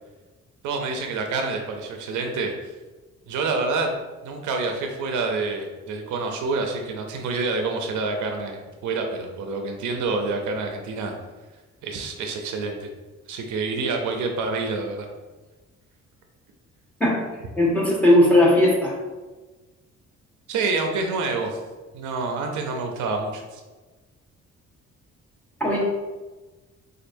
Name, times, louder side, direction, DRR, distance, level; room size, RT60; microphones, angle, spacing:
voice 1, 0.6-2.5 3.3-3.9 4.2-11.1 11.8-12.9 13.3-15.1 20.5-21.6 21.9-23.6, right 3 dB, 75° right, 3 dB, 0.6 m, -27 dB
voice 2, 17.6-18.9 25.6-25.8, left 1 dB, 5° left, -4 dB, 1.3 m, -17 dB
4.4 x 2.5 x 2.5 m, 1.2 s
cardioid pair, 90°, 30 cm